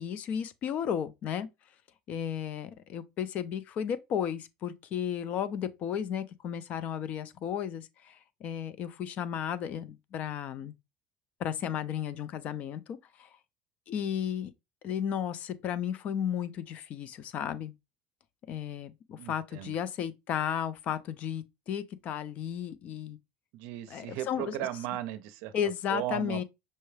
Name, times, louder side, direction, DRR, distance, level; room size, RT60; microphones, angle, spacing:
voice 1, 0.0-1.5 2.1-10.7 11.4-12.8 13.2-13.3 13.9-14.5 14.8-17.7 18.5-23.2 23.9-24.6 25.5-26.4, left 9 dB, 45° left, 0.4 m, -34 dB
voice 2, 19.2-19.7 23.5-25.5 25.9-26.4, right 13 dB, 75° right, 0.5 m, -36 dB
5.4 x 2.3 x 3.2 m
cardioid pair, 155°, 4 cm